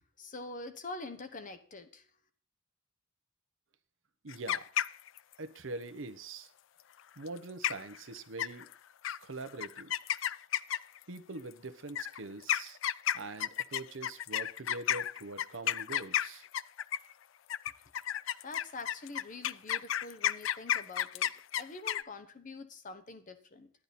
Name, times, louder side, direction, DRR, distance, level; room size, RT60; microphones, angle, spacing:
voice 1, 0.2-2.1 18.4-21.3 21.6-23.7, left 3 dB, 45° left, 1.0 m, -45 dB
voice 2, 4.2-4.7 5.4-6.5 7.2-8.7 9.2-9.9 11.1-12.8 13.1-16.5, right 3 dB, 80° right, 1.0 m, -43 dB
sound 1, 4.3-5.3 7.3-7.4 7.6-8.0 8.4-8.7 9.0-9.2 9.6-11.0 11.9-17.1 17.5-22.0, left 11 dB, 75° left, 0.4 m, -32 dB
10.5 x 10.0 x 4.2 m
head